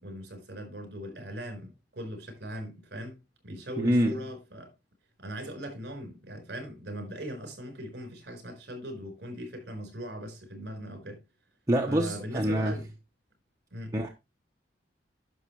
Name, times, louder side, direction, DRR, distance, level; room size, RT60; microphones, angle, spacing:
voice 1, 0.0-3.2 3.4-4.7 5.2-11.2 11.8-12.9 13.7-13.9, equal, 60° right, 4.5 m, -40 dB
voice 2, 3.8-4.2 11.7-12.8 13.9-14.1, equal, 15° right, 1.0 m, -25 dB
11.0 x 6.6 x 3.1 m
head